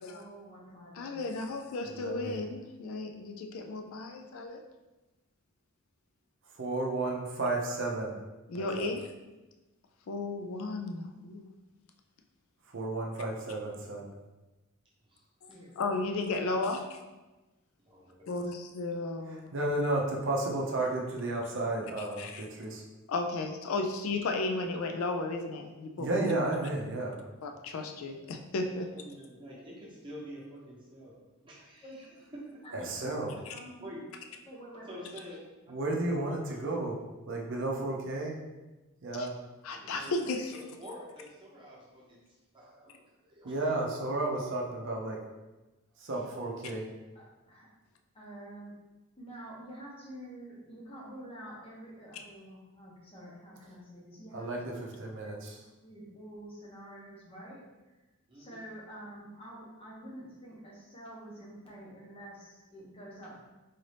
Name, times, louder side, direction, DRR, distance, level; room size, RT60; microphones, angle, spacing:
voice 1, 0.1-1.2 15.5-15.9 31.8-32.2 32.6-32.9 33.3-33.9 34.5-35.0 47.1-47.7 48.1-48.7 49.2-54.5 55.1-58.0 58.3-63.3, right 1 dB, 25° left, -4 dB, 0.9 m, -48 dB
voice 2, 0.9-4.6 8.5-9.1 10.1-11.5 15.4-15.5 15.8-17.0 18.3-19.5 22.0-22.5 23.1-26.3 27.4-28.9 33.5-33.6 39.1-39.3 39.6-40.5, left 3 dB, 65° left, 4 dB, 0.4 m, -34 dB
voice 3, 1.9-2.4 6.6-8.1 8.6-8.9 12.7-14.1 19.5-22.8 26.0-27.2 32.7-33.4 35.7-37.0 37.3-38.3 39.0-39.3 43.4-45.2 46.0-46.9 54.3-54.7 55.0-55.6, right 2 dB, 55° right, -1 dB, 0.6 m, -32 dB
voice 4, 17.9-18.3 28.9-31.2 31.4-32.9 33.8-34.0 34.8-35.4 36.5-36.6 39.7-43.7 46.1-46.2 58.3-58.7, equal, 20° right, -6 dB, 0.9 m, -48 dB
4.0 x 2.6 x 3.3 m, 1.1 s
head